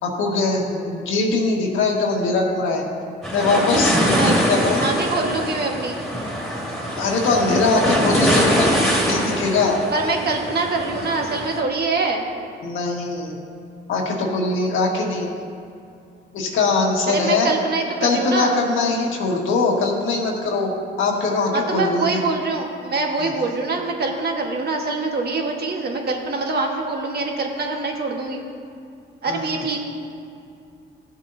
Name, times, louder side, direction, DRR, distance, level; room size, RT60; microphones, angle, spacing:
voice 1, 0.0-2.8 3.3-4.8 6.9-9.8 12.6-13.4 13.9-15.3 16.3-17.5 18.0-20.7 21.0-22.2 23.2-23.3 29.3-29.4, left 3 dB, 80° left, -1 dB, 1.7 m, -21 dB
sound 1, 3.2-11.6, equal, ahead, 2.3 m, -23 dB
voice 2, 4.8-6.0 9.9-12.3 17.1-18.6 21.5-28.4 29.2-29.8, right 3 dB, 55° right, 1 dB, 1.4 m, -24 dB
15.0 x 7.3 x 2.7 m, 2.4 s
cardioid pair, 90°, 20 cm